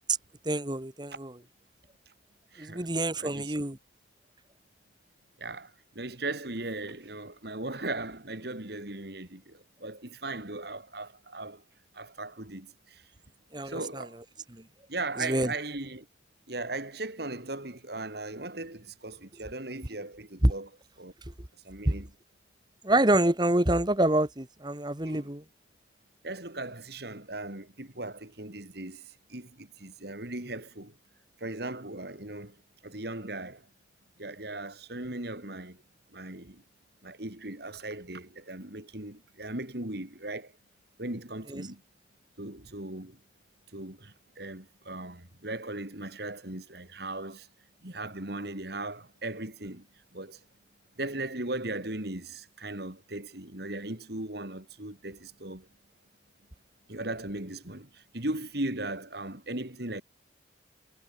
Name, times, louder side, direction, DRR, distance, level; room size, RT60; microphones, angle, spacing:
voice 1, 0.4-1.3 2.6-3.8 13.5-14.1 14.5-14.6 15.2-15.5 20.4-20.5 21.8-21.9 22.8-25.4 41.5-41.6, right 1 dB, 25° right, 1.7 m, -26 dB
voice 2, 2.5-2.9 3.2-3.5 5.4-11.6 11.9-13.0 13.6-14.2 14.9-16.1 16.5-20.7 21.0-21.1 21.6-22.1 25.0-25.3 26.2-30.9 31.4-32.5 32.8-33.6 34.2-35.8 36.1-36.6 37.0-40.5 41.0-41.8 42.4-43.2 43.7-47.5 47.8-49.9 50.1-50.4 51.0-55.7 56.9-60.0, right 2 dB, 55° right, 3.1 m, -38 dB
head